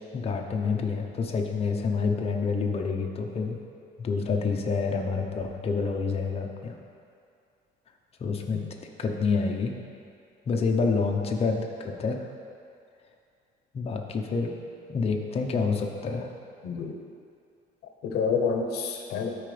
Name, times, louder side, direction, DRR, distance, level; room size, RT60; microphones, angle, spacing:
voice 1, 0.0-3.6 4.0-6.8 8.2-8.6 9.0-9.7 10.5-12.3 13.7-14.5 14.9-16.3, left 4 dB, 35° left, 1 dB, 0.8 m, -28 dB
voice 2, 16.6-17.0 18.0-19.3, left 5 dB, 70° left, 3 dB, 0.9 m, -28 dB
13.0 x 4.8 x 3.4 m, 2.4 s
cardioid pair, 110°, 17 cm